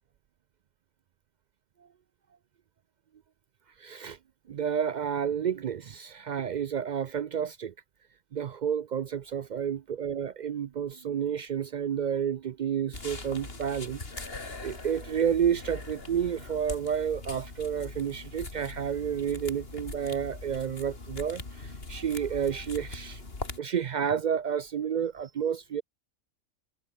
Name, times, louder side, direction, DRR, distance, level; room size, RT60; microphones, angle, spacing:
voice 1, 3.8-4.2 4.5-7.7 8.3-14.0 14.6-23.2 23.6-25.8, right 8 dB, 65° right, 0.4 m, -30 dB
sound 1, 12.9-23.6, left 3 dB, 50° left, 3.0 m, -41 dB
omnidirectional pair, 1.3 m